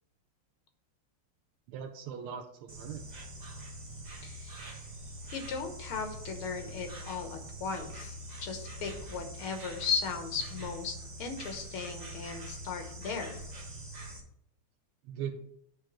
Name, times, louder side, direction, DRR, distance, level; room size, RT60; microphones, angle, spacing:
voice 1, 1.7-3.1 15.0-15.4, right 8 dB, 80° right, 2 dB, 1.5 m, -40 dB
Insect, 2.7-14.2, equal, 45° right, 0.5 m, -44 dB
voice 2, 4.2-4.9 5.3-13.4, left 5 dB, 75° left, 5 dB, 1.9 m, -37 dB
8.9 x 3.3 x 5.9 m, 0.71 s
omnidirectional pair, 2.4 m